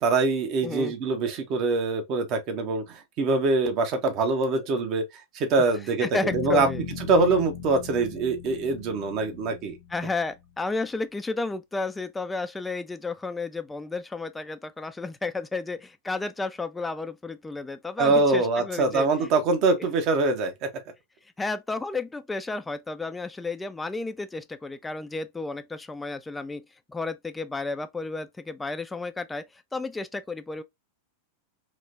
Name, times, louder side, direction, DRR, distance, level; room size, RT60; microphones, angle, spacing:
voice 1, 0.0-5.0 5.3-6.7 7.1-9.8 18.0-20.7, right 3 dB, 40° right, 0.9 m, -24 dB
voice 2, 0.6-0.9 5.6-5.7 6.0-6.8 9.9-19.1 21.4-26.6 26.9-29.4 29.7-30.6, left 3 dB, 10° left, 0.3 m, -32 dB
sound 1, 6.3-10.3, left 6 dB, 60° left, 0.7 m, -38 dB
3.1 x 2.9 x 2.5 m
figure-of-eight pair, 90°, 0 cm